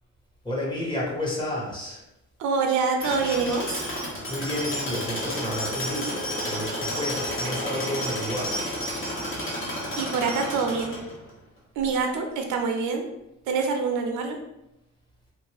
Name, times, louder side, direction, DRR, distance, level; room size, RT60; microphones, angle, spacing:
voice 1, 0.4-2.0 3.9-8.6, left 1 dB, 15° left, -4 dB, 1.2 m, -31 dB
voice 2, 2.4-3.8 10.0-11.0 11.8-13.1 13.5-14.4, right 4 dB, 80° right, 3 dB, 0.6 m, -25 dB
Tools, 3.0-11.3, equal, 45° left, 1.2 m, -31 dB
2.7 x 2.5 x 3.3 m, 0.87 s
cardioid pair, 90°, 30 cm